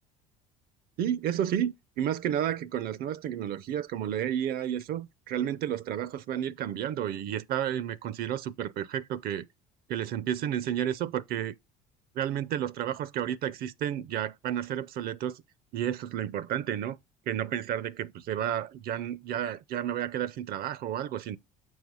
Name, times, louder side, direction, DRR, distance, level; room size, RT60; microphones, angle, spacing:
voice 1, 1.0-9.5 9.9-11.5 12.2-15.4 15.7-17.0 17.3-21.4, right 10 dB, 50° right, 0.5 m, -31 dB
6.3 x 4.5 x 5.4 m
hypercardioid pair, 70°, 19 cm